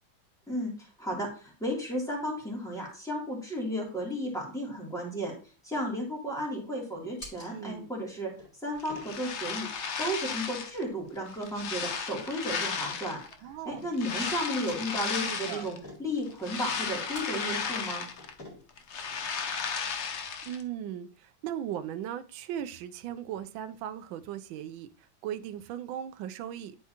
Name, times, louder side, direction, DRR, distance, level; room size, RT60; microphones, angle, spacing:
voice 1, 0.5-5.3 5.6-8.3 8.6-9.7 10.0-18.0, equal, ahead, 2.7 m, -34 dB
sound 1, 5.3-20.6, left 1 dB, 30° left, 3.8 m, -54 dB
voice 2, 7.5-7.9 13.4-13.9 15.2-15.7 20.4-24.9 25.2-26.8, right 10 dB, 75° right, 1.3 m, -38 dB
sound 2, 8.8-10.8 11.3-13.3 13.9-15.8 16.2-18.4 18.7-20.6, left 6 dB, 85° left, 0.6 m, -34 dB
11.0 x 4.6 x 2.9 m
omnidirectional pair, 2.2 m